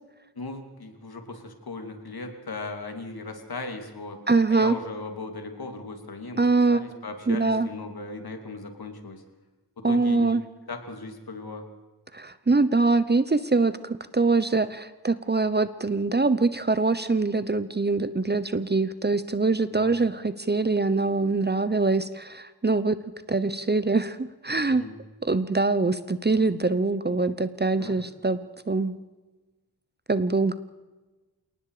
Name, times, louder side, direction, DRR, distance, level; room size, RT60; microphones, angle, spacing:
voice 1, 0.4-4.2 4.5-6.4 6.7-9.2 9.8-10.3 10.7-11.6 19.7-19.9 24.7-25.0 27.7-28.0, left 3 dB, 65° left, 5 dB, 3.1 m, -37 dB
voice 2, 4.3-4.8 6.4-7.0 7.3-7.7 9.8-10.4 12.1-23.0 23.3-24.8 25.2-28.4 28.7-28.9 30.1-30.6, right 3 dB, 25° right, 14 dB, 0.9 m, -23 dB
28.0 x 18.5 x 5.1 m, 1.2 s
wide cardioid pair, 90°, 40 cm